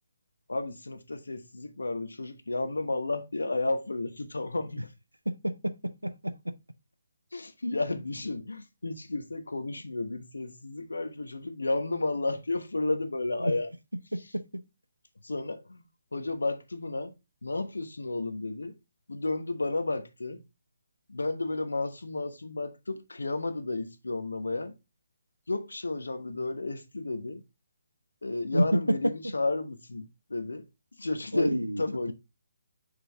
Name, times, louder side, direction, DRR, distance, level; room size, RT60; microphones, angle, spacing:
voice 1, 0.5-4.9 7.3-13.7 15.2-15.8 16.1-17.1 17.4-18.8 19.1-20.4 21.1-24.7 25.5-27.4 28.2-30.6 31.0-32.1, left 2 dB, 70° left, 1.1 m, -32 dB
voice 2, 5.3-6.5 13.4-13.5 14.1-14.4 28.5-28.8 31.3-31.8, equal, 90° right, 0.7 m, -29 dB
6.2 x 4.9 x 3.4 m
figure-of-eight pair, 140°, 0 cm